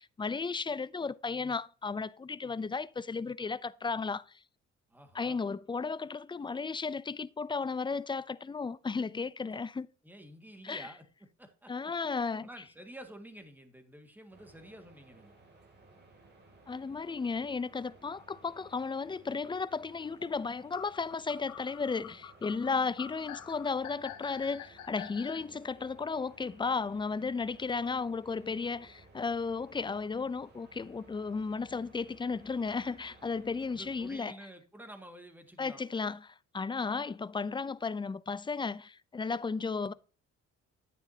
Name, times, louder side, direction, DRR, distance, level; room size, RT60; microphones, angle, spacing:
voice 1, 0.0-4.3 5.1-9.9 10.6-10.9 11.7-12.5 16.7-34.3 35.6-39.9, left 4 dB, 15° left, 0.4 m, -34 dB
voice 2, 4.9-5.4 10.0-11.0 11.4-11.7 12.4-15.3 33.7-35.8, right 1 dB, 5° right, 1.8 m, -50 dB
sound 1, 14.3-34.2, right 2 dB, 35° right, 2.8 m, -59 dB
sound 2, 20.7-25.4, left 10 dB, 85° left, 1.3 m, -47 dB
9.9 x 9.0 x 2.8 m
cardioid pair, 90°, 30 cm